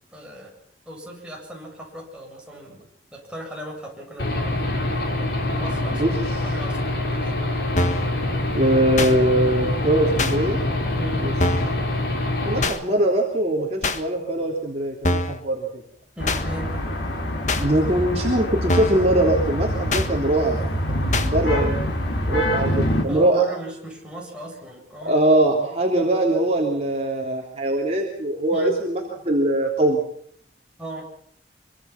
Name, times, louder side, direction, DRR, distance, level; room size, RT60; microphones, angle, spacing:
voice 1, 0.1-0.5 0.9-4.9 5.5-7.4 10.9-11.3 16.1-16.9 23.1-25.2 28.5-28.8 30.8-31.1, right 1 dB, 5° right, -2 dB, 7.9 m, -37 dB
Aircraft / Engine, 4.2-12.7, left 2 dB, 60° left, 5.0 m, -25 dB
sound 1, 7.8-8.1 9.0-9.1 10.2-10.4 11.4-11.8 12.6-12.8 13.8-14.0 15.0-15.4 16.3-16.4 17.5-17.6 18.7-19.0 19.9-20.1 21.1-21.3, left 2 dB, 40° left, 1.7 m, -23 dB
voice 2, 8.6-10.6 11.2-11.3 12.4-15.8 17.6-21.9 22.3-23.4 25.0-30.0, right 1 dB, 35° right, -1 dB, 3.5 m, -22 dB
sound 2, 16.2-23.0, equal, 80° left, 5.5 m, -25 dB
26.0 x 24.0 x 6.1 m, 0.65 s
head